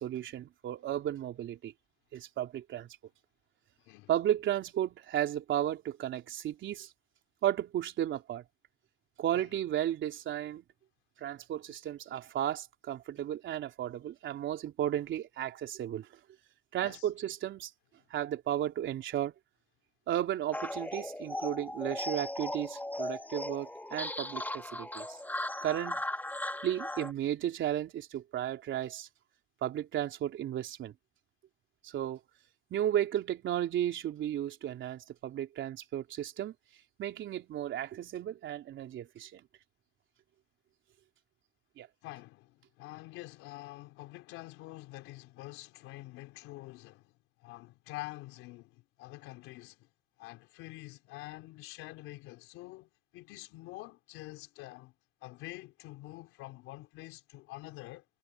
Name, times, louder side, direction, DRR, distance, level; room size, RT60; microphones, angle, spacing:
voice 1, 0.0-1.7 2.1-2.9 4.1-6.9 7.4-8.4 9.2-10.6 11.2-16.1 16.7-17.7 18.1-19.3 20.1-25.2 25.6-26.0 26.6-29.1 29.6-30.9 31.8-32.2 32.7-36.5 37.0-39.4 41.8-41.9, right 11 dB, 65° right, 3.6 m, -34 dB
sound 1, 20.5-27.1, left 1 dB, 10° left, 2.7 m, -37 dB
voice 2, 42.0-47.1 47.4-49.9 50.2-54.9 55.2-58.0, left 19 dB, 85° left, 3.6 m, -47 dB
supercardioid pair, 75°, 21 cm